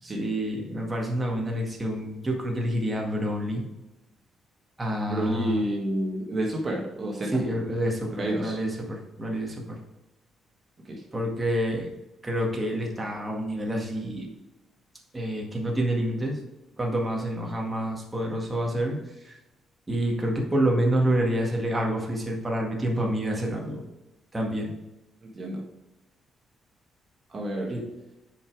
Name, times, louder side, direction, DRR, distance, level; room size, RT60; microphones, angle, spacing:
voice 1, 0.2-3.6 4.8-5.6 7.3-9.8 11.1-11.9 12.2-14.3 15.1-16.4 16.8-19.4 19.9-23.8 24.3-24.7 27.7-27.8, right 1 dB, 20° right, -1 dB, 1.8 m, -28 dB
voice 2, 5.1-7.3 8.2-8.6 10.9-11.0 25.2-25.6 27.3-27.7, right 1 dB, 40° right, -1 dB, 1.7 m, -29 dB
6.9 x 5.3 x 4.8 m, 0.99 s
cardioid pair, 90°, 0 cm